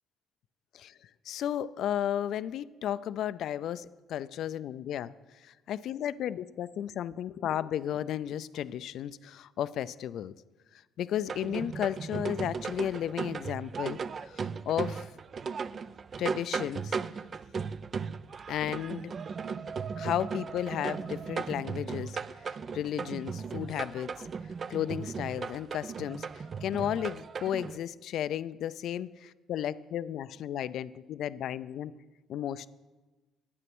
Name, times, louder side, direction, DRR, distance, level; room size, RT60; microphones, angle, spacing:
voice 1, 1.3-5.1 5.7-10.3 11.0-14.0 14.3-15.1 16.2-17.0 18.5-19.1 20.0-22.2 22.7-24.3 24.7-26.3 26.6-31.9 32.3-32.7, left 10 dB, 65° left, 17 dB, 0.4 m, -33 dB
sound 1, 11.3-27.8, right 5 dB, 35° right, 0.4 m, -37 dB
11.0 x 9.6 x 6.1 m, 1.2 s
cardioid pair, 115°, 0 cm